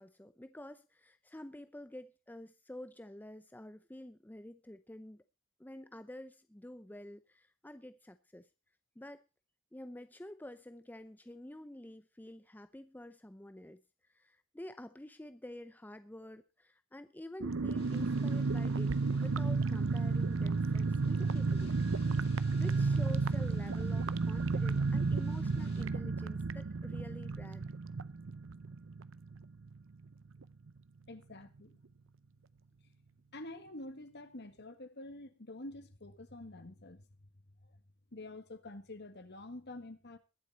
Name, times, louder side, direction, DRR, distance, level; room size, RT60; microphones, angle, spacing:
voice 1, 0.0-5.2 5.6-8.5 9.0-9.2 9.7-18.9 19.2-21.8 22.5-27.6, left 1 dB, 10° left, 0.6 m, -49 dB
sound 1, 17.4-29.8 30.0-30.1 30.4-30.7, right 4 dB, 65° right, 0.6 m, -32 dB
sound 2, 17.7-25.8, left 5 dB, 30° left, 4.9 m, -63 dB
voice 2, 31.1-31.8 33.3-37.3 37.6-37.8 38.1-40.2, left 2 dB, 55° left, 1.8 m, -48 dB
21.5 x 7.8 x 4.1 m
head